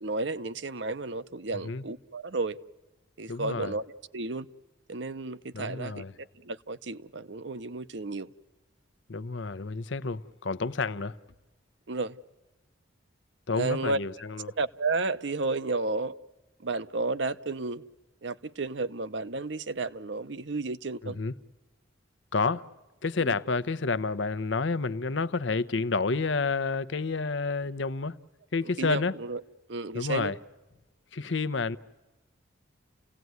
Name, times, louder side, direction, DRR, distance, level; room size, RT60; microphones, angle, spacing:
voice 1, 0.0-2.6 3.2-3.8 4.1-4.5 4.9-6.0 6.4-8.3 11.9-12.2 13.5-14.0 14.6-16.1 16.6-17.8 18.2-21.2 23.2-23.4 28.8-29.4 29.7-30.3, right 3 dB, 65° right, 0.8 m, -32 dB
voice 2, 3.3-3.7 5.5-6.1 9.1-11.2 13.5-14.5 21.0-21.3 22.3-22.6 23.0-28.2 28.5-29.1 29.9-30.4 31.1-31.8, left 4 dB, 70° left, 0.8 m, -29 dB
29.5 x 17.0 x 9.5 m
head